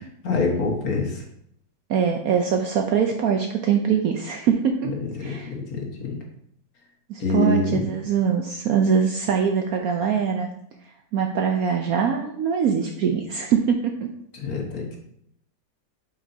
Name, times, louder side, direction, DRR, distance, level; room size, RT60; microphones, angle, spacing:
voice 1, 0.2-1.2 4.8-6.2 7.2-7.8 14.3-15.0, left 3 dB, 55° left, 0 dB, 1.7 m, -26 dB
voice 2, 1.9-4.9 5.2-5.5 7.1-10.5 11.1-14.1, right 7 dB, 70° right, 3 dB, 0.9 m, -23 dB
8.1 x 5.1 x 2.7 m, 0.73 s
omnidirectional pair, 2.0 m